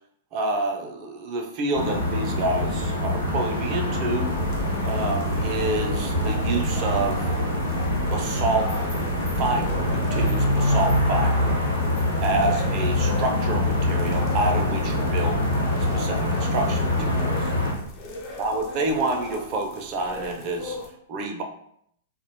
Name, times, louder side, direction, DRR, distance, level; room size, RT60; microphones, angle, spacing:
voice 1, 0.3-4.3 4.8-7.4 8.0-8.7 9.4-11.6 12.2-15.4 15.9-17.4 18.4-20.8 21.1-21.4, right 2 dB, 40° right, 3 dB, 0.4 m, -28 dB
sound 1, 1.7-17.7, left 1 dB, 90° left, 0.7 m, -24 dB
sound 2, 4.3-20.9, left 2 dB, 45° left, 0.5 m, -38 dB
2.5 x 2.1 x 2.8 m, 0.69 s
figure-of-eight pair, 105°, 0 cm